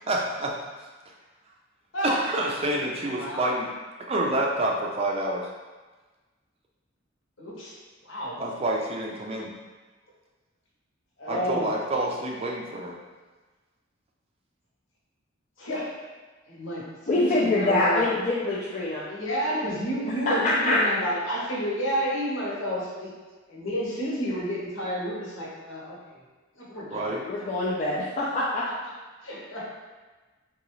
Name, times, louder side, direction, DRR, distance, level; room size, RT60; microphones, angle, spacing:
voice 1, 0.1-0.5 2.0-3.7 4.1-5.5 8.4-9.5 11.3-12.9 26.9-27.2, right 1 dB, 30° right, -1 dB, 0.4 m, -28 dB
voice 2, 1.9-2.3 3.0-3.5 7.4-7.7 8.0-8.3 11.2-11.7 15.6-15.9 16.5-16.8 17.1-18.1 19.1-23.1 23.5-26.2 26.5-27.2 29.2-29.7, equal, 75° left, -5 dB, 1.0 m, -30 dB
voice 3, 17.1-19.0 20.2-20.8 27.3-28.6, left 2 dB, 40° left, -7 dB, 0.4 m, -24 dB
3.8 x 2.3 x 3.0 m, 1.3 s
head